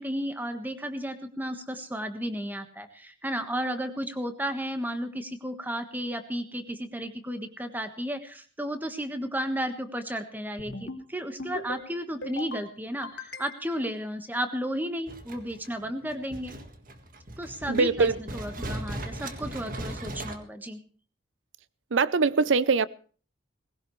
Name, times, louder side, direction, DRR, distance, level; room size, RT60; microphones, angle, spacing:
voice 1, 0.0-16.6 17.4-20.8, equal, 10° right, 1.4 m, -33 dB
sound 1, 10.6-11.0 11.4-11.8 12.2-12.6 13.0-13.8, left 2 dB, 65° left, 2.5 m, -39 dB
sound 2, 15.1-20.4, right 1 dB, 45° right, 1.7 m, -38 dB
voice 2, 17.7-18.1 21.9-22.9, right 4 dB, 75° right, 0.6 m, -22 dB
19.5 x 16.5 x 3.2 m
head